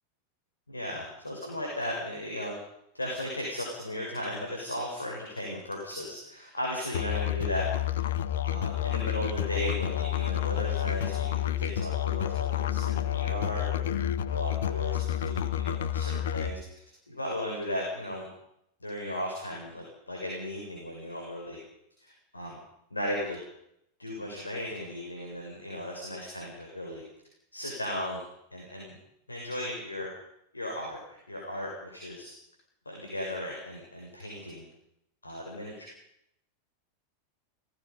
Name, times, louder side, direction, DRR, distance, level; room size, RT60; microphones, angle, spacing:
voice 1, 0.7-2.6 2.9-7.6 7.9-8.0 8.4-13.9 14.3-18.3 18.8-21.6 22.0-22.6 22.9-23.4 24.0-27.0 27.5-28.2 28.5-28.9 29.3-30.1 30.5-32.3 32.8-34.7 35.2-35.9, left 1 dB, 80° left, -1 dB, 6.0 m, -36 dB
Musical instrument, 6.9-16.5, left 12 dB, 60° left, 1.2 m, -30 dB
29.5 x 19.0 x 5.3 m, 0.78 s
figure-of-eight pair, 90°, 0 cm